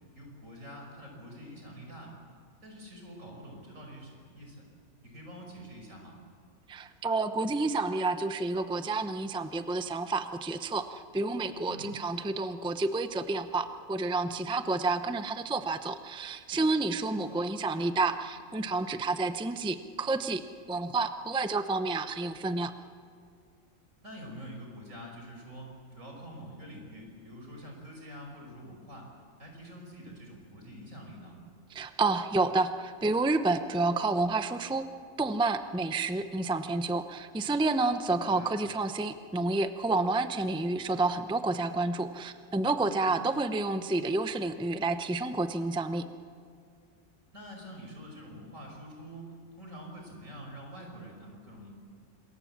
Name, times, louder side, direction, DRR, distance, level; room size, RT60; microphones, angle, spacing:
voice 1, 0.1-2.2 2.6-4.7 5.0-6.2 11.7-11.9 17.1-17.4 24.0-29.1 29.4-31.4 38.2-38.5 43.0-43.3 47.3-49.3 49.6-51.7, equal, 80° right, 1 dB, 6.1 m, -46 dB
voice 2, 6.7-20.4 20.7-22.7 31.7-34.9 35.2-46.1, right 3 dB, 5° right, 9 dB, 0.6 m, -29 dB
26.5 x 22.0 x 7.4 m, 2.3 s
omnidirectional pair, 1.4 m